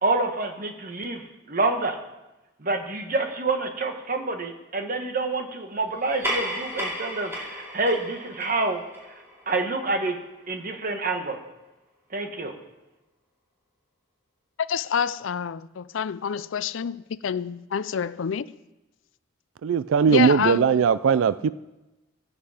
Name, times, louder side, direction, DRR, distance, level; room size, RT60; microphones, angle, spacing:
voice 1, 0.0-2.0 2.6-8.8 9.5-10.2 10.5-11.4 12.1-12.5, right 3 dB, 45° right, 1.3 m, -27 dB
sound 1, 6.0-10.8, equal, 10° right, 4.3 m, -35 dB
voice 2, 14.6-18.5 20.1-20.8, left 7 dB, 70° left, 0.4 m, -28 dB
voice 3, 19.6-21.5, right 7 dB, 75° right, 0.3 m, -19 dB
15.5 x 8.1 x 5.0 m
head